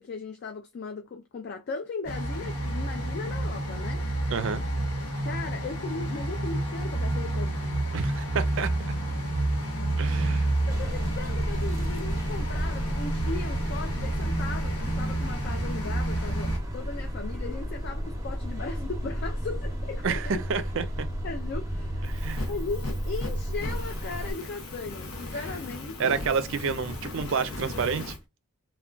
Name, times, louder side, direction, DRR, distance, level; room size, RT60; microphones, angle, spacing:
voice 1, 0.0-4.0 5.2-7.9 10.1-10.4 10.7-20.4 21.2-22.1 22.4-26.1, left 4 dB, 50° left, 0.3 m, -37 dB
sound 1, 2.0-16.6, right 1 dB, 85° left, 1.2 m, -29 dB
voice 2, 4.3-4.6 7.9-8.7 10.0-10.5 20.0-21.1 22.1-22.5 26.0-28.1, right 5 dB, 55° right, 0.4 m, -29 dB
sound 2, 10.7-24.3, equal, 15° right, 0.7 m, -33 dB
Fire, 22.1-28.2, left 2 dB, 70° left, 0.7 m, -38 dB
2.2 x 2.2 x 3.7 m
head